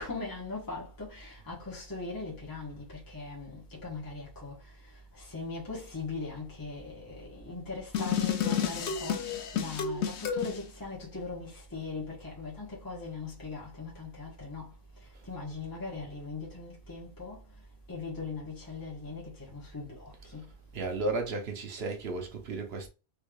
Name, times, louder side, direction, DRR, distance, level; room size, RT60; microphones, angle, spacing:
voice 1, 0.0-4.6 5.1-9.2 9.5-14.7 15.3-17.4 17.9-20.4, left 3 dB, 20° left, 1.1 m, -40 dB
sound 1, 7.9-10.6, left 8 dB, 90° left, 0.9 m, -30 dB
voice 2, 20.7-22.9, right 3 dB, 70° right, 1.0 m, -33 dB
3.5 x 3.2 x 2.3 m
omnidirectional pair, 1.1 m